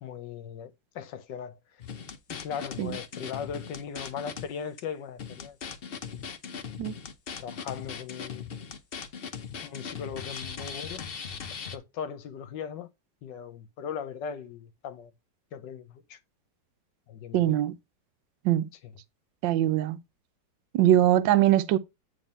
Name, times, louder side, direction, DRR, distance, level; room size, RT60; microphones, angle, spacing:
voice 1, 0.0-1.6 2.3-5.6 6.1-6.2 7.4-8.5 9.6-11.0 11.6-12.9 13.2-15.1 15.5-16.2 17.1-17.6 18.8-18.9, left 7 dB, 75° left, 1.4 m, -38 dB
sound 1, 1.8-4.5 4.8-4.9 5.2-11.8, left 6 dB, 50° left, 0.7 m, -39 dB
voice 2, 17.3-17.7 18.4-18.7 19.4-20.0 20.7-21.8, right 13 dB, 85° right, 1.3 m, -22 dB
9.1 x 3.4 x 5.4 m
omnidirectional pair, 2.0 m